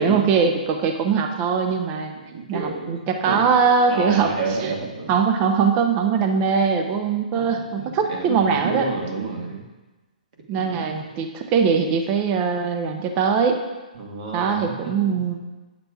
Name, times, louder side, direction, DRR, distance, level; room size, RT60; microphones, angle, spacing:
voice 1, 0.0-2.1 2.5-4.7 5.1-8.9 10.5-13.6 14.3-15.4, right 6 dB, 25° right, 5 dB, 0.5 m, -21 dB
voice 2, 2.2-3.5 3.9-5.1 7.3-7.5 8.1-9.6 10.5-10.8 14.0-15.2, right 4 dB, 50° right, 0 dB, 1.4 m, -30 dB
8.7 x 6.7 x 2.3 m, 1.2 s
hypercardioid pair, 145°, 5 cm